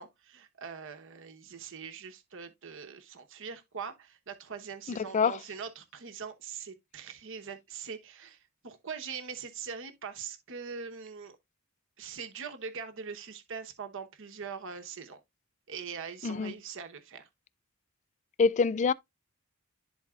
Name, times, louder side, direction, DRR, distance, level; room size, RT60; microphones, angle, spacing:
voice 1, 0.0-11.4 12.0-15.2 15.7-17.3, right 6 dB, 60° right, 1.0 m, -42 dB
voice 2, 4.9-5.4 16.2-16.5 18.4-18.9, left 5 dB, 30° left, 0.3 m, -26 dB
12.0 x 4.0 x 2.4 m
head